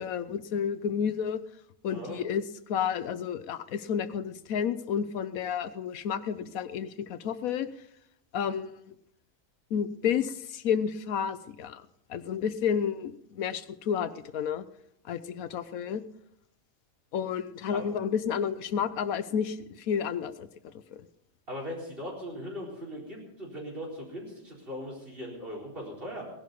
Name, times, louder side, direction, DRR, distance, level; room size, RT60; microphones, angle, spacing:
voice 1, 0.0-1.4 1.8-2.4 2.7-7.7 8.3-8.7 9.7-11.8 12.1-14.6 15.1-16.0 17.1-20.5 20.9-21.0, left 7 dB, 90° left, 13 dB, 1.2 m, -31 dB
voice 2, 1.9-2.2 17.7-17.8 21.5-26.2, equal, 40° right, -2 dB, 4.6 m, -39 dB
17.5 x 11.5 x 5.3 m, 0.78 s
omnidirectional pair, 1.4 m